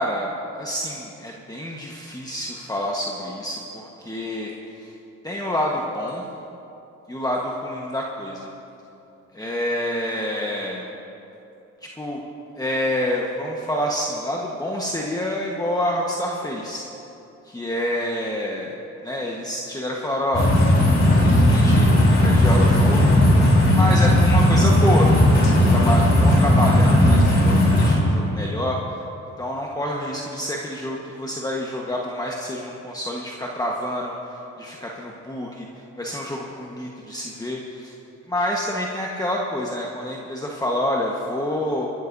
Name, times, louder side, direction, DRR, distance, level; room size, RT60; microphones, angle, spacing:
voice 1, 0.0-4.5 4.8-4.9 5.2-6.2 7.1-8.5 9.3-10.9 11.8-12.2 12.6-16.8 17.4-18.8 19.0-20.5 21.2-23.5 23.7-29.0 29.4-35.7 36.0-37.9 38.3-41.9, left 1 dB, 10° left, -2 dB, 1.3 m, -27 dB
sound 1, 20.3-28.0, left 1 dB, 40° left, 3.5 m, -16 dB
26.0 x 12.0 x 2.7 m, 2.9 s
cardioid pair, 90°, 30 cm